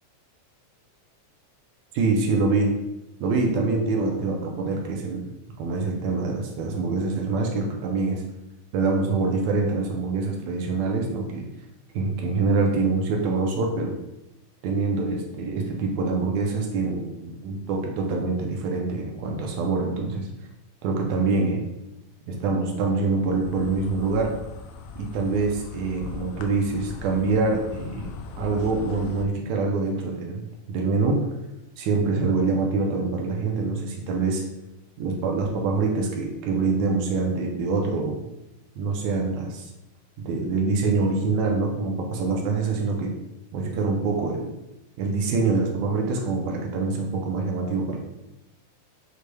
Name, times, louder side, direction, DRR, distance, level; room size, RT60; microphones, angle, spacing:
voice 1, 1.9-2.8 3.2-5.2 5.6-8.2 8.7-11.5 11.9-14.0 14.6-20.3 20.8-21.6 22.3-24.3 25.0-28.1 28.4-31.3 31.8-34.4 35.0-38.2 38.8-39.7 40.2-43.1 43.5-44.5 45.0-48.0, right 3 dB, 80° right, 1 dB, 1.7 m, -25 dB
Insect, 23.2-29.2, left 5 dB, 90° left, 1.5 m, -39 dB
6.5 x 3.1 x 2.2 m, 0.92 s
omnidirectional pair, 3.7 m